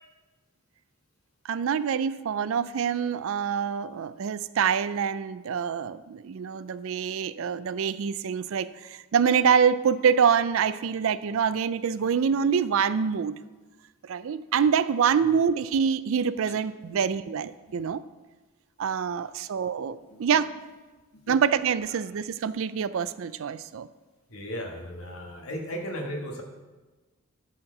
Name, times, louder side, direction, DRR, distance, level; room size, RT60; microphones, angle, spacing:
voice 1, 1.4-13.4 14.0-18.0 18.8-20.5 21.3-23.9, right 7 dB, 65° right, 15 dB, 0.4 m, -25 dB
voice 2, 24.3-26.4, equal, 75° left, 2 dB, 1.5 m, -36 dB
11.0 x 4.4 x 6.6 m, 1.2 s
head